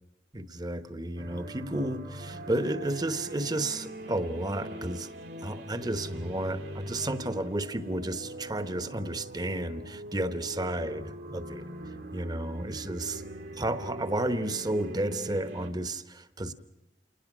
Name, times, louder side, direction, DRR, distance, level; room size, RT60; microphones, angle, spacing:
voice 1, 0.3-5.1 5.4-11.6 12.1-13.2 13.6-16.5, right 1 dB, 25° right, 10 dB, 1.0 m, -32 dB
sound 1, 1.2-15.7, right 1 dB, 80° right, 2.1 m, -42 dB
28.5 x 20.0 x 6.2 m, 0.94 s
head